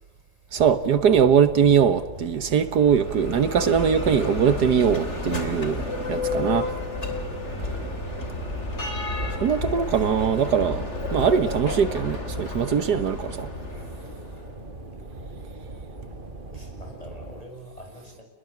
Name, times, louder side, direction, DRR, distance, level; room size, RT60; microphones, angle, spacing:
sound 1, 0.5-17.4, right 2 dB, 30° right, 3.0 m, -40 dB
voice 1, 0.5-6.7 9.4-10.8 11.1-13.5, right 7 dB, 75° right, 1.8 m, -21 dB
Bell, 2.7-14.5, left 2 dB, 40° left, 3.8 m, -31 dB
voice 2, 13.7-14.0 16.5-18.2, equal, 20° left, 7.9 m, -44 dB
29.5 x 21.5 x 8.5 m
omnidirectional pair, 1.8 m